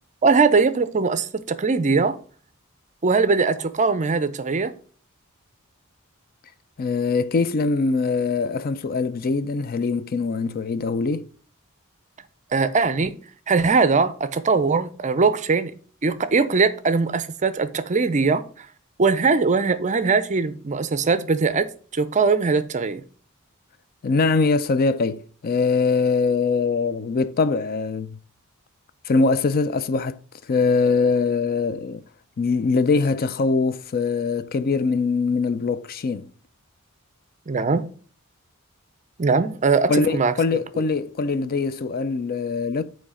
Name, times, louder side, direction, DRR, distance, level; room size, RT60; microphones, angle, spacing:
voice 1, 0.2-2.2 3.0-4.7 12.5-13.2 13.5-15.7 16.0-18.7 19.0-23.0 37.5-37.9 39.2-40.3 40.7-40.8, right 4 dB, 35° right, 0.5 m, -21 dB
voice 2, 6.8-11.3 24.0-28.2 29.1-30.2 30.5-32.0 32.4-36.3 39.9-42.8, left 4 dB, 45° left, 0.4 m, -22 dB
8.5 x 3.2 x 4.9 m
head